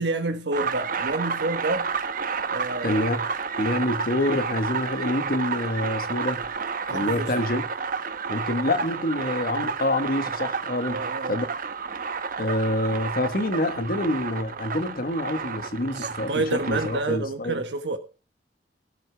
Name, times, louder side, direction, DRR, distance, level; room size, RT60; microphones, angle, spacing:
voice 1, 0.0-1.9 2.5-3.0 6.9-7.3 10.9-11.4 15.9-18.0, right 2 dB, 85° right, 1.3 m, -28 dB
sound 1, 0.5-17.0, right 5 dB, 55° right, 1.0 m, -31 dB
voice 2, 2.8-3.2 3.6-6.5 6.9-7.7 8.3-11.5 12.4-17.6, left 1 dB, 55° left, 1.4 m, -27 dB
17.5 x 8.1 x 3.4 m
head